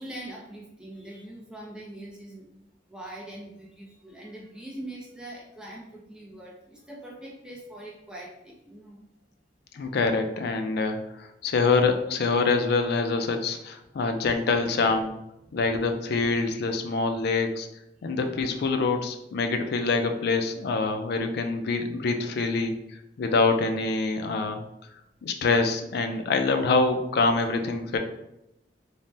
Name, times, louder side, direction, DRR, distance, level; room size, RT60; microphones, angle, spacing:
voice 1, 0.0-2.5 2.9-9.0 15.5-15.6 18.1-18.2 27.4-27.5, right 1 dB, 5° right, -4 dB, 0.5 m, -42 dB
voice 2, 9.7-15.1 15.5-17.7 18.0-22.7 23.2-24.6 25.2-28.0, left 3 dB, 60° left, 6 dB, 0.4 m, -25 dB
3.2 x 2.1 x 2.6 m, 0.84 s
head